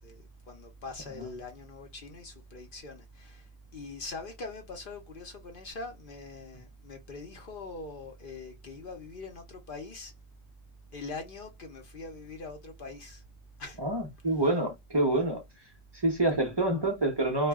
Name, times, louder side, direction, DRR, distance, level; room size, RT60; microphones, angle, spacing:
voice 1, 0.0-10.1 10.9-13.2 13.6-13.8, left 3 dB, 55° left, 0.7 m, -43 dB
voice 2, 13.8-15.4 15.9-17.5, right 2 dB, 30° right, 0.4 m, -27 dB
2.3 x 2.1 x 3.4 m
omnidirectional pair, 1.4 m